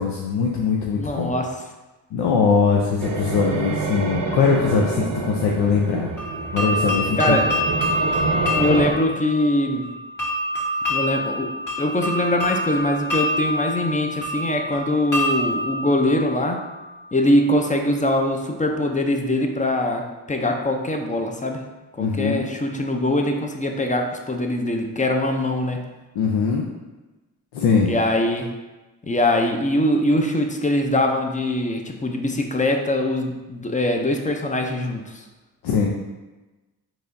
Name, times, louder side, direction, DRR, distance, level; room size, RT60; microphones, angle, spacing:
voice 1, 0.0-1.3 2.1-6.1 6.5-7.4 22.0-22.5 26.1-26.7 27.5-27.9 35.6-35.9, left 5 dB, 80° left, -2 dB, 0.6 m, -21 dB
voice 2, 0.9-1.5 7.2-7.5 8.5-9.9 10.9-16.7 17.1-21.6 21.9-25.9 27.9-28.5 29.0-35.2, left 1 dB, 20° left, 3 dB, 0.5 m, -22 dB
sound 1, 3.0-8.9, right 4 dB, 55° right, 0.7 m, -27 dB
sound 2, 6.2-17.0, left 1 dB, 50° left, 1.4 m, -26 dB
4.7 x 2.7 x 2.6 m, 1.1 s
supercardioid pair, 50°, 41 cm